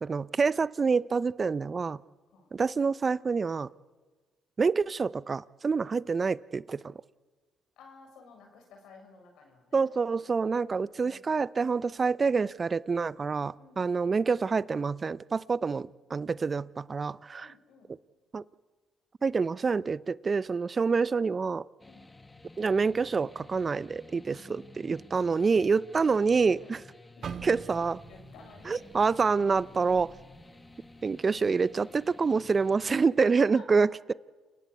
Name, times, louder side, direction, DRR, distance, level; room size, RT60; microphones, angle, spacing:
voice 1, 0.0-2.0 2.5-3.7 4.6-7.0 9.7-17.5 18.3-18.4 19.2-21.6 22.6-26.8 27.4-28.0 28.7-30.1 31.0-34.1, right 5 dB, 40° right, 20 dB, 0.7 m, -27 dB
voice 2, 7.8-9.8 10.7-11.2 13.6-14.0 15.7-15.9 17.4-17.9 21.8-22.1 24.3-24.5 26.6-26.8 27.2-27.6 28.1-28.9 29.6-29.8 32.8-33.8, left 4 dB, 75° left, 3 dB, 6.9 m, -53 dB
sound 1, 21.8-33.1, left 2 dB, 20° left, 1.9 m, -53 dB
sound 2, 27.2-31.3 31.6-31.9 32.5-32.9, right 7 dB, 55° right, 1.5 m, -45 dB
29.0 x 18.0 x 8.2 m, 1.4 s
hypercardioid pair, 50°, 0 cm